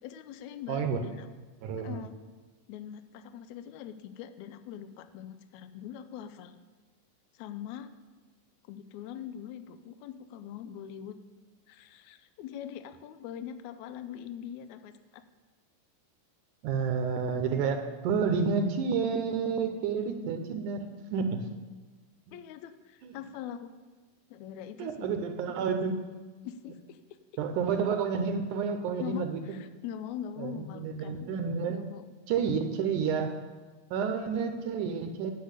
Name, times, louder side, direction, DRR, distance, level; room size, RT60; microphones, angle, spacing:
voice 1, 0.0-1.3 1.8-2.2 2.7-6.6 7.3-7.9 8.6-11.2 11.7-15.2 21.4-21.5 22.3-23.7 24.3-25.1 26.4-27.0 29.0-31.3 31.7-32.1, left 9 dB, 80° left, 11 dB, 1.7 m, -42 dB
voice 2, 0.7-1.0 1.6-2.1 16.6-20.9 21.1-21.4 23.0-23.1 24.8-26.0 27.4-29.6 30.4-31.8 32.3-33.3 33.9-35.3, right 6 dB, 75° right, 6 dB, 2.1 m, -30 dB
10.0 x 6.7 x 8.0 m, 1.3 s
omnidirectional pair, 3.8 m